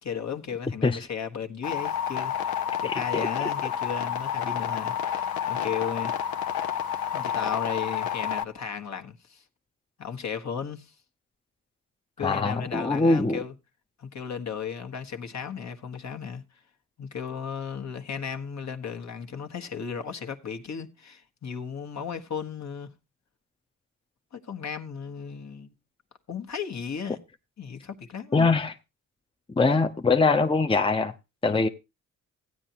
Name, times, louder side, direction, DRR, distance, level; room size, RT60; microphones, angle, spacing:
voice 1, 0.0-2.3 2.8-6.1 7.1-9.4 10.0-10.9 12.2-13.5 14.0-16.4 17.0-22.9 24.3-25.7 26.3-27.2 27.6-28.5, left 7 dB, 50° left, 1.3 m, -35 dB
sound 1, 1.6-8.4, left 9 dB, 85° left, 1.0 m, -29 dB
voice 2, 2.9-3.3 12.2-13.4 28.3-28.7 29.6-31.1 31.4-31.7, left 3 dB, 15° left, 0.7 m, -22 dB
15.0 x 9.2 x 2.8 m
cardioid pair, 75°, 34 cm